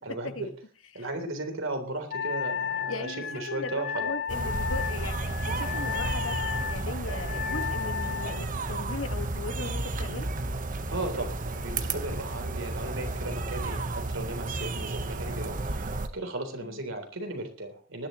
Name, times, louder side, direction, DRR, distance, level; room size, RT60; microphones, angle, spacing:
voice 1, 0.0-0.4 0.9-4.2 10.9-18.1, right 2 dB, 65° right, 5 dB, 3.6 m, -36 dB
Wind instrument woodwind instrument, 2.1-8.4, left 7 dB, 50° left, 1.2 m, -34 dB
voice 2, 2.9-6.4 6.7-10.3 16.6-16.8, left 3 dB, 75° left, 7 dB, 1.7 m, -38 dB
sound 1, 4.3-16.1, right 2 dB, 40° right, 1.2 m, -32 dB
19.5 x 12.0 x 3.1 m, 0.38 s
head